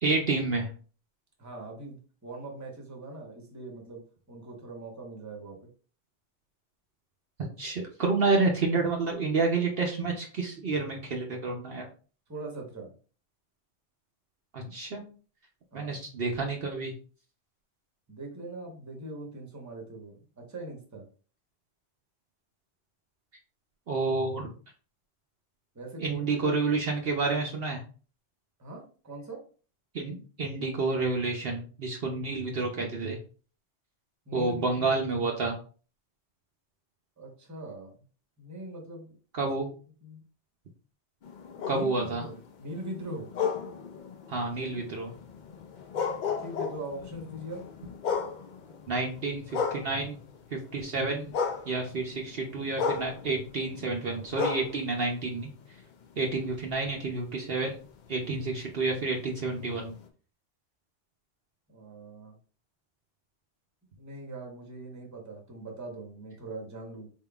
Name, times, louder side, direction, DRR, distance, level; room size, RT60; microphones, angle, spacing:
voice 1, 0.0-0.7 7.6-11.8 14.5-15.0 15.7-16.9 23.9-24.5 26.0-27.8 29.9-33.2 34.3-35.6 39.3-39.7 41.7-42.2 44.3-45.1 48.9-50.2 50.5-51.3 51.7-55.5 56.2-57.8 58.1-59.9, right 3 dB, 60° right, 1 dB, 0.8 m, -29 dB
voice 2, 1.4-4.0 4.3-5.6 12.3-12.9 15.7-16.0 18.1-21.0 25.7-26.6 28.6-29.4 34.3-35.0 37.2-37.9 38.4-39.5 40.0-40.2 41.7-43.3 46.4-47.7 61.7-62.4 63.9-67.1, right 2 dB, 15° right, 1 dB, 0.9 m, -41 dB
sound 1, 41.2-50.5 50.8-56.0 56.5-60.1, left 6 dB, 55° left, 0.5 m, -36 dB
4.3 x 3.6 x 2.3 m, 0.39 s
omnidirectional pair, 1.2 m